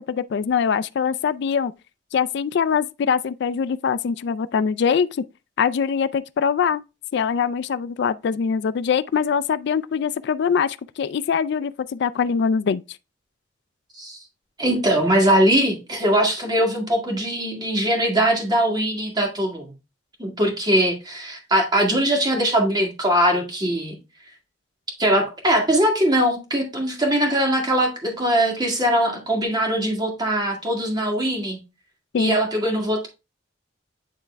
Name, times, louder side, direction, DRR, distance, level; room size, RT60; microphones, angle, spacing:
voice 1, 0.1-1.7 2.1-5.1 5.6-6.8 7.1-12.8 32.1-32.4, left 6 dB, 65° left, 0.3 m, -23 dB
voice 2, 14.6-19.7 20.2-24.0 25.0-31.6 32.2-33.1, right 1 dB, 20° right, 1.9 m, -21 dB
9.4 x 3.5 x 3.3 m
head